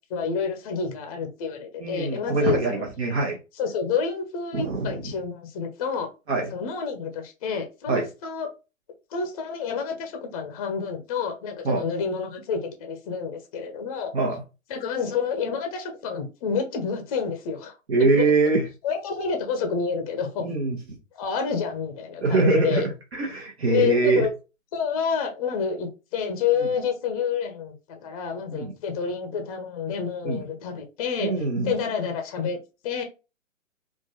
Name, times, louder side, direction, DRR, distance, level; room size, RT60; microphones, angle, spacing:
voice 1, 0.1-2.9 3.5-6.1 6.5-8.5 9.1-14.1 14.7-17.7 18.2-18.3 18.8-20.4 21.1-22.8 23.7-24.3 24.7-31.3 31.6-32.6 32.8-33.0, left 6 dB, 30° left, 5 dB, 0.6 m, -28 dB
voice 2, 1.8-3.4 4.5-4.9 6.3-6.5 7.9-8.0 11.6-11.8 14.1-14.4 17.9-18.6 20.4-20.8 22.2-24.3 28.5-28.7 30.2-30.4 31.2-31.7, right 3 dB, 55° right, 0 dB, 1.1 m, -23 dB
3.6 x 2.4 x 2.8 m, 0.30 s
figure-of-eight pair, 120°, 39 cm